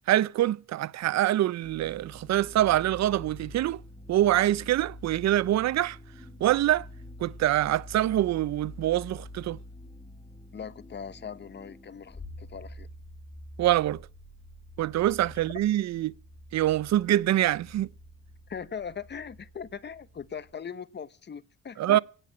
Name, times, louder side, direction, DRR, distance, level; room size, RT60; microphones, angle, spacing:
voice 1, 0.1-3.8 4.1-6.0 6.4-6.9 7.2-9.6 13.6-14.0 14.8-16.1 16.5-17.9 21.8-22.0, right 13 dB, 60° right, 0.6 m, -25 dB
sound 1, 1.6-20.5, left 1 dB, 10° left, 2.9 m, -47 dB
voice 2, 10.5-12.9 18.5-22.0, left 7 dB, 35° left, 1.0 m, -40 dB
17.5 x 6.6 x 8.7 m
cardioid pair, 90°, 30 cm